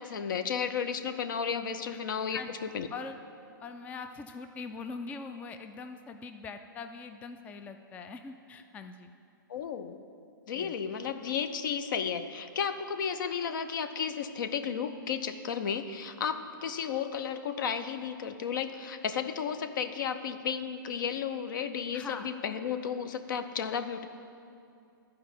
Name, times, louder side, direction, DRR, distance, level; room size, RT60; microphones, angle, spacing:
voice 1, 0.0-2.4 2.7-2.9 9.5-10.0 10.5-24.0, left 7 dB, 65° left, 9 dB, 0.6 m, -33 dB
voice 2, 3.6-9.1 10.5-10.7 21.9-22.3, left 4 dB, 15° left, 8 dB, 0.3 m, -42 dB
11.0 x 4.8 x 7.2 m, 2.5 s
hypercardioid pair, 125°, 12 cm